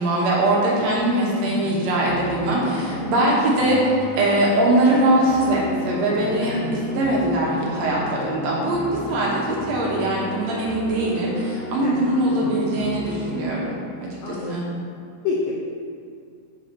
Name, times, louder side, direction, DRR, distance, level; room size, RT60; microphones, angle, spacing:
voice 1, 0.0-3.8 4.2-13.8 14.3-14.7, right 1 dB, 70° right, -4 dB, 2.0 m, -21 dB
sound 1, 1.4-13.4, left 1 dB, 65° left, 2.0 m, -34 dB
voice 2, 2.7-3.0 5.8-6.5 7.7-8.0 11.8-12.1 14.2-14.8 15.2-15.6, left 4 dB, 90° left, -4 dB, 1.3 m, -31 dB
7.3 x 4.0 x 4.3 m, 2.3 s
omnidirectional pair, 3.6 m